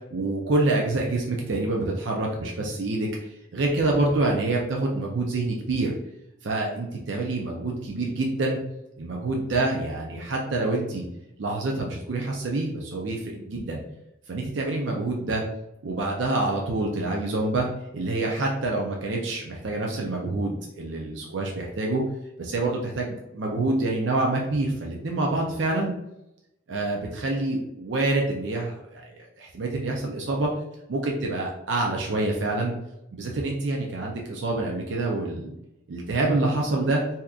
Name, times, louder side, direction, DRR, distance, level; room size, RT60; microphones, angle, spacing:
voice 1, 0.1-6.0 6.4-8.6 9.0-11.0 11.4-13.8 14.3-15.4 15.8-17.7 17.9-22.0 22.4-25.9 26.7-30.5 30.9-32.7 33.1-35.5 35.9-37.0, right 2 dB, 75° right, 0 dB, 0.5 m, -27 dB
2.8 x 2.4 x 3.5 m, 0.86 s
head